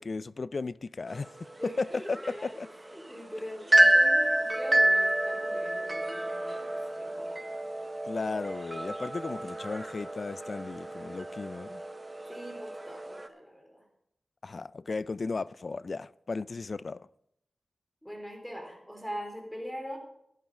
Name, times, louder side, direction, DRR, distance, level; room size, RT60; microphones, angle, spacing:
voice 1, 0.0-1.4 1.6-2.7 8.0-11.8 14.4-17.1, left 3 dB, 55° left, 0.3 m, -35 dB
sound 1, 1.1-13.3, right 1 dB, 25° right, 0.9 m, -28 dB
voice 2, 1.6-7.4 12.3-13.9 18.0-20.0, equal, 5° left, 3.6 m, -42 dB
11.0 x 10.5 x 4.8 m
cardioid pair, 60°, 0 cm